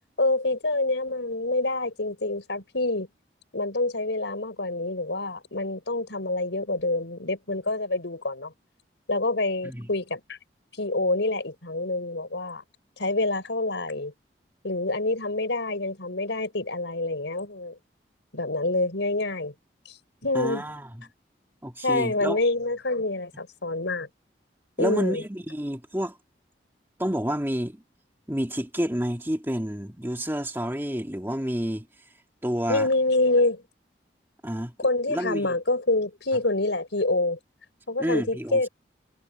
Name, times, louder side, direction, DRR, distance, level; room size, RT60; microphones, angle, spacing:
voice 1, 0.2-3.1 3.5-8.5 9.1-10.4 10.8-12.6 13.0-14.1 14.6-17.8 18.3-19.5 19.9-20.0 20.2-20.6 21.8-24.1 24.8-25.2 32.7-33.6 34.8-37.4 37.9-38.7, left 2 dB, 90° left, 5.4 m, -26 dB
voice 2, 20.3-21.1 21.6-22.4 24.8-26.2 27.0-27.8 28.3-31.9 32.4-32.9 34.4-34.7 35.1-35.5 38.0-38.7, equal, 10° right, 1.9 m, -29 dB
head